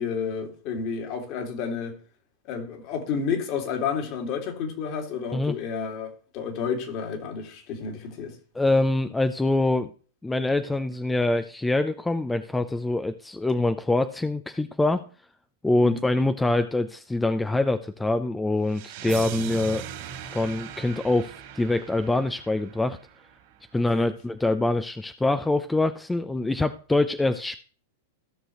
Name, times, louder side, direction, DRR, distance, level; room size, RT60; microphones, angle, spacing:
voice 1, 0.0-2.0 2.5-8.4 15.8-16.0 23.7-24.1, left 6 dB, 45° left, 2.4 m, -31 dB
voice 2, 8.5-9.9 10.2-15.0 15.6-19.8 20.3-23.0 23.7-27.6, left 2 dB, 10° left, 0.6 m, -24 dB
sound 1, 18.7-23.6, right 10 dB, 60° right, 2.8 m, -39 dB
15.5 x 6.3 x 3.1 m
hypercardioid pair, 105°, 0 cm